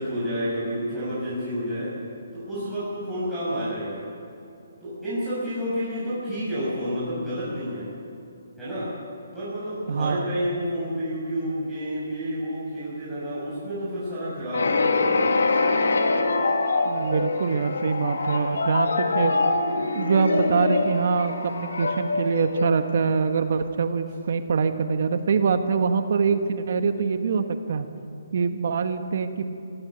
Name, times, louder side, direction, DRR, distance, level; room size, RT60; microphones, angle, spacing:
voice 1, 0.0-1.9 2.3-4.0 4.8-7.9 8.6-8.9 9.3-15.3, equal, ahead, -14 dB, 6.9 m, -30 dB
voice 2, 9.9-10.3 16.8-19.3 19.9-27.9 28.3-29.4, right 5 dB, 55° right, 8 dB, 1.3 m, -24 dB
sound 1, 14.5-23.3, left 3 dB, 80° left, 2.4 m, -24 dB
17.5 x 16.5 x 9.2 m, 2.7 s
hypercardioid pair, 165°, 0 cm